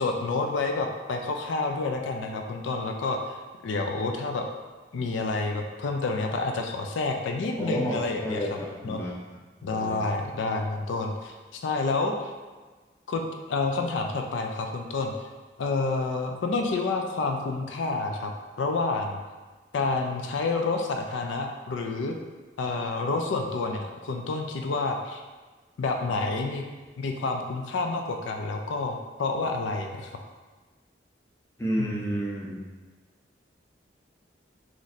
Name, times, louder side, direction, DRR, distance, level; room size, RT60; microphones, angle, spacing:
voice 1, 0.0-3.4 3.6-4.5 4.9-8.5 8.8-9.0 9.6-12.3 13.1-15.3 15.6-18.3 18.6-19.2 19.7-22.2 22.6-25.2 25.8-26.6 27.0-30.1 31.8-32.1, left 3 dB, 85° left, 3 dB, 0.4 m, -29 dB
voice 2, 7.6-9.2 9.6-10.1 31.6-32.6, equal, 15° left, -4 dB, 0.5 m, -31 dB
3.0 x 2.5 x 4.0 m, 1.3 s
head